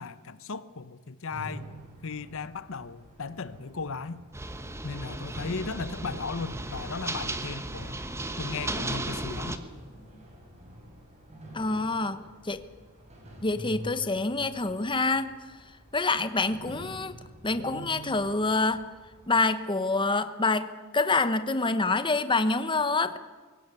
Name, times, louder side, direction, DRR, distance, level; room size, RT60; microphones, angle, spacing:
voice 1, 0.0-1.7 2.0-4.2 4.8-8.0 8.4-9.6, left 4 dB, 65° left, 0.9 m, -36 dB
sound 1, 1.3-19.3, right 1 dB, 30° right, 6.2 m, -47 dB
sound 2, 4.3-9.6, right 2 dB, 10° right, 1.2 m, -35 dB
voice 2, 11.5-12.6 13.4-15.3 15.9-17.2 17.4-18.9 19.3-23.2, left 3 dB, 20° left, 1.0 m, -26 dB
22.0 x 18.5 x 8.3 m
head